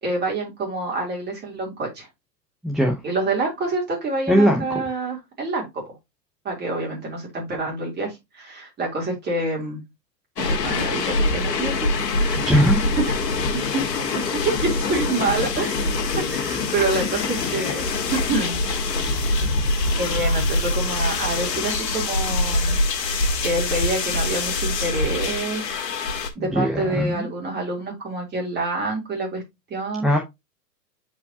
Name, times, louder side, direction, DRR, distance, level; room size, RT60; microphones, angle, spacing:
voice 1, 0.0-2.1 3.0-6.0 6.4-9.8 10.4-11.9 12.2-12.6 13.1-13.2 13.5-14.1 14.4-15.8 16.3-17.8 18.1-18.6 20.0-22.8 23.4-25.8 26.3-29.4 29.7-30.1, right 2 dB, 20° right, 3.2 m, -27 dB
voice 2, 2.6-2.9 4.3-4.6 12.4-12.8 26.5-27.3 30.0-30.2, equal, ahead, 0.7 m, -19 dB
sound 1, 10.4-26.3, left 3 dB, 75° left, 1.6 m, -24 dB
8.2 x 4.9 x 2.8 m
hypercardioid pair, 125°, 49 cm